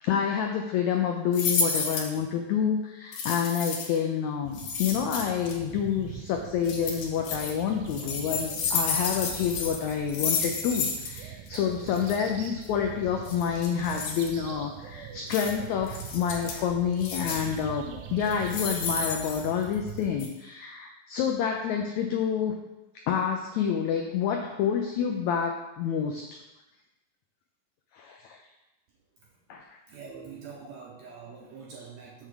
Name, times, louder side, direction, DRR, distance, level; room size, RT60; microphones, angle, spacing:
voice 1, 0.0-22.6 23.1-26.2 27.9-28.4 29.5-29.6, left 7 dB, 90° left, 3 dB, 1.6 m, -28 dB
sound 1, 1.3-2.1 3.1-4.0 4.5-5.5 6.6-7.5 7.9-11.2 11.5-11.6 11.9-12.2 13.3-14.3 15.3-15.5 15.9-16.6 17.0-17.6 18.2-19.9 20.2-20.3, left 5 dB, 70° left, 2.3 m, -31 dB
sound 2, 4.5-20.2, right 9 dB, 90° right, 2.3 m, -43 dB
voice 2, 29.9-32.3, right 5 dB, 75° right, -2 dB, 1.7 m, -44 dB
6.8 x 3.7 x 6.3 m, 0.98 s
omnidirectional pair, 4.0 m